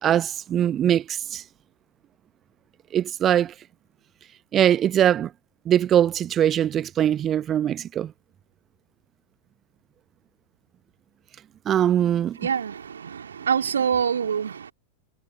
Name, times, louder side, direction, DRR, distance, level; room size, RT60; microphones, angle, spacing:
voice 1, 0.0-1.4 2.9-3.5 4.5-5.3 5.7-8.1 11.7-12.4, right 10 dB, 30° right, 0.8 m, -21 dB
voice 2, 12.4-14.7, right 7 dB, 70° right, 2.1 m, -25 dB
figure-of-eight pair, 90°, 0 cm